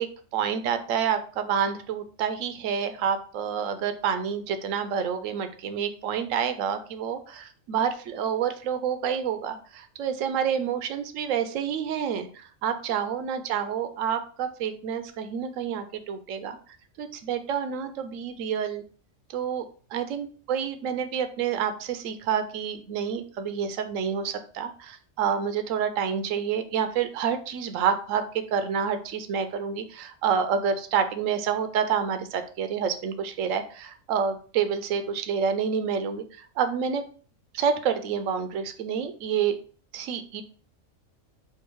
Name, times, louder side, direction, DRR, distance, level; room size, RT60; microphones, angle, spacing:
voice 1, 0.0-16.6 17.0-18.8 19.3-19.7 19.9-28.2 28.5-37.0 37.5-39.6 39.9-40.4, right 7 dB, 75° right, 9 dB, 1.0 m, -28 dB
4.6 x 2.5 x 4.6 m, 0.41 s
omnidirectional pair, 1.4 m